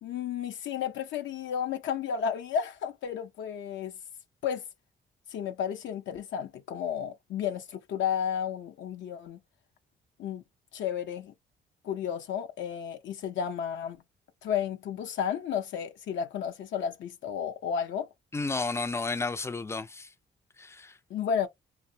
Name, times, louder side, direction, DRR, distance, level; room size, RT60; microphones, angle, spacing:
voice 1, 0.0-3.9 4.4-4.6 5.3-9.4 10.2-10.4 10.7-11.3 11.8-14.0 14.4-18.1 21.1-21.5, left 8 dB, 70° left, 0.6 m, -32 dB
voice 2, 18.3-20.1 20.6-20.9, left 3 dB, 15° left, 0.4 m, -32 dB
2.6 x 2.1 x 2.7 m
cardioid pair, 90°, 20 cm